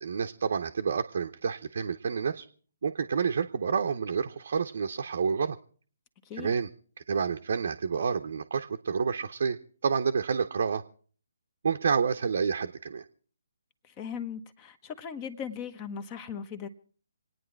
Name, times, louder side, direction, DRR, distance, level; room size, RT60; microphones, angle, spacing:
voice 1, 0.0-2.4 2.8-5.6 6.4-6.7 7.1-10.8 11.6-13.0, right 6 dB, 55° right, 4 dB, 0.8 m, -29 dB
voice 2, 13.9-16.7, left 7 dB, 25° left, 12 dB, 1.0 m, -38 dB
27.5 x 9.4 x 4.5 m, 0.44 s
figure-of-eight pair, 140°, 0 cm